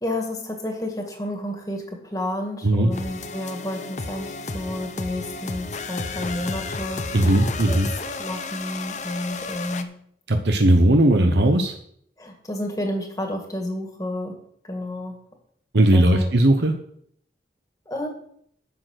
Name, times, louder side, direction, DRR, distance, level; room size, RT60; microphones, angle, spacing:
voice 1, 0.0-7.0 7.7-7.8 8.2-9.9 12.2-14.4 14.6-15.2 15.9-16.3 17.9-18.1, left 1 dB, 20° left, 2 dB, 2.0 m, -30 dB
sound 1, 2.9-9.8, left 3 dB, 40° left, 0.8 m, -32 dB
voice 2, 7.1-7.9 10.3-11.7 15.7-16.7, right 1 dB, 80° right, 5 dB, 1.0 m, -17 dB
10.5 x 6.7 x 6.5 m, 0.67 s
head